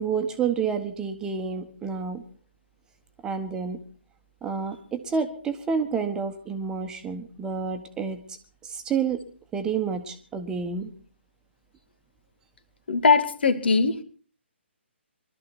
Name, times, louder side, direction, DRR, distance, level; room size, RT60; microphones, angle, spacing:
voice 1, 0.0-2.2 3.2-3.8 4.4-8.2 8.6-9.2 9.5-10.9, right 6 dB, 10° right, 6 dB, 1.5 m, -29 dB
voice 2, 12.9-14.0, left 4 dB, 55° left, 10 dB, 2.2 m, -20 dB
23.0 x 13.0 x 4.4 m, 0.42 s
figure-of-eight pair, 135°, 7 cm